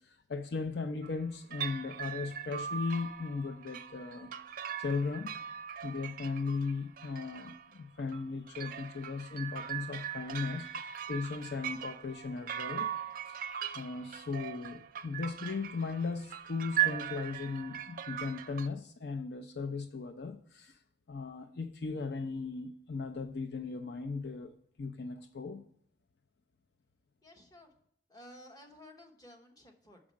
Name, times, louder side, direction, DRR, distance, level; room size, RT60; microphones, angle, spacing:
voice 1, 0.0-4.4 4.8-5.4 5.8-12.9 13.2-13.4 13.7-20.8 21.1-25.6, left 4 dB, 60° left, 0.5 m, -37 dB
sound 1, 1.0-1.2 1.5-18.7, right 10 dB, 50° right, 0.4 m, -39 dB
voice 2, 27.2-27.7 28.1-30.0, left 1 dB, 20° left, 1.0 m, -54 dB
6.2 x 4.8 x 6.2 m
head